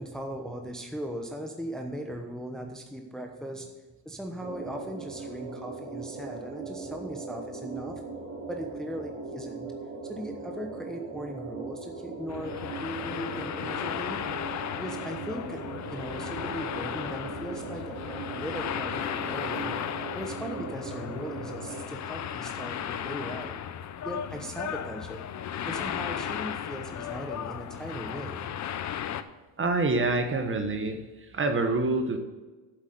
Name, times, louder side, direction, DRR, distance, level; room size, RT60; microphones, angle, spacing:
voice 1, 0.0-3.7 4.0-8.0 8.5-9.7 10.0-14.2 14.8-15.6 15.9-17.9 18.3-19.8 20.1-23.5 24.0-25.2 25.7-28.6, equal, ahead, 3 dB, 1.0 m, -38 dB
sound 1, 4.4-21.8, right 4 dB, 85° right, 2.8 m, -39 dB
sound 2, 12.3-29.2, left 9 dB, 35° left, 0.7 m, -35 dB
voice 2, 29.6-31.0 31.3-32.2, right 3 dB, 25° right, 7 dB, 1.2 m, -26 dB
8.1 x 7.9 x 6.7 m, 1.2 s
supercardioid pair, 100°, 49 cm